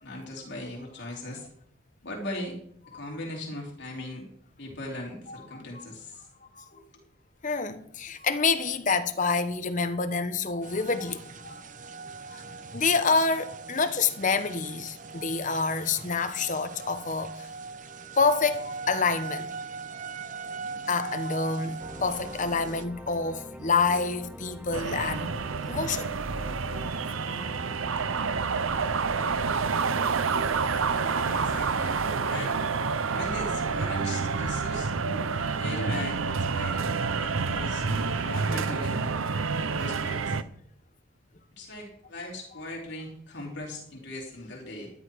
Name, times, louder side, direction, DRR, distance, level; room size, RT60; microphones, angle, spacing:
voice 1, 0.0-1.5 2.0-2.6 2.9-4.2 4.6-6.3 6.7-6.8 31.3-32.0 32.3-32.6 33.1-34.9 35.4-39.2 39.6-40.4 41.6-44.9, left 1 dB, 55° left, 3.9 m, -39 dB
voice 2, 7.4-11.6 12.3-12.4 12.7-17.5 18.2-19.5 20.9-25.3 25.7-26.1 26.7-26.9 27.2-27.3 36.8-36.9 37.2-37.3, left 4 dB, 40° left, 1.0 m, -27 dB
sound 1, 10.6-22.8, right 4 dB, 40° right, 0.7 m, -40 dB
sound 2, 21.8-32.0, equal, 5° right, 0.5 m, -44 dB
sound 3, 24.7-40.4, right 5 dB, 85° right, 0.7 m, -28 dB
13.0 x 11.0 x 4.7 m
head